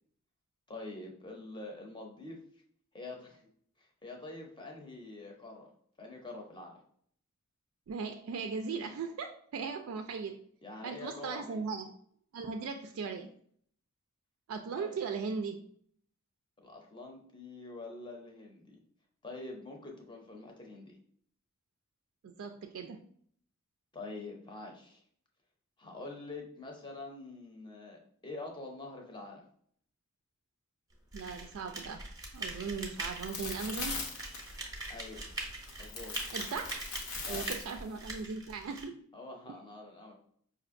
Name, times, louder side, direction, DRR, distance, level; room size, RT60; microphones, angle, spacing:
voice 1, 0.7-2.4 2.9-3.5 3.8-5.7 6.0-6.8 10.6-11.6 14.7-15.0 16.6-18.8 19.2-21.0 23.9-25.0 25.8-29.4 34.9-35.2 35.8-36.1 37.3-37.5 39.1-40.1, left 2 dB, 20° left, 1 dB, 0.7 m, -45 dB
voice 2, 7.9-10.4 10.8-11.9 12.3-13.3 14.5-15.6 22.2-23.0 31.1-32.1 32.3-34.0 36.3-36.9 37.3-39.0 39.5-39.6, right 5 dB, 65° right, 5 dB, 0.3 m, -38 dB
sound 1, 31.1-38.8, right 2 dB, 15° right, 0.6 m, -42 dB
sound 2, 32.3-38.2, left 4 dB, 70° left, 0.8 m, -42 dB
5.1 x 2.5 x 2.5 m, 0.62 s
head